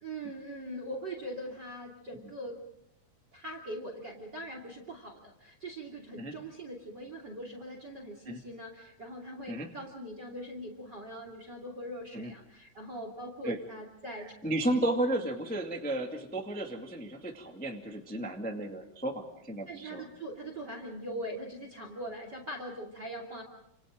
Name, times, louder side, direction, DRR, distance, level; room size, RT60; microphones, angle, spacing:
voice 1, 0.0-2.6 3.3-14.3 19.7-23.4, right 1 dB, 30° right, 4 dB, 2.9 m, -41 dB
voice 2, 14.4-20.0, right 1 dB, 5° left, 2 dB, 1.1 m, -33 dB
28.5 x 27.5 x 3.8 m, 0.76 s
omnidirectional pair, 4.2 m